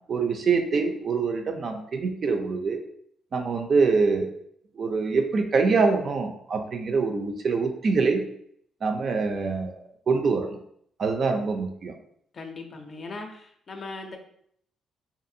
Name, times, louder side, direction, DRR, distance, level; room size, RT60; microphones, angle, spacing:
voice 1, 0.1-2.8 3.3-4.3 4.8-8.2 8.8-9.8 10.1-10.5 11.0-11.9, right 4 dB, 50° right, 5 dB, 0.4 m, -24 dB
voice 2, 12.3-14.2, left 3 dB, 45° left, 4 dB, 0.4 m, -39 dB
2.6 x 2.4 x 2.6 m, 0.67 s
cardioid pair, 90°, 0 cm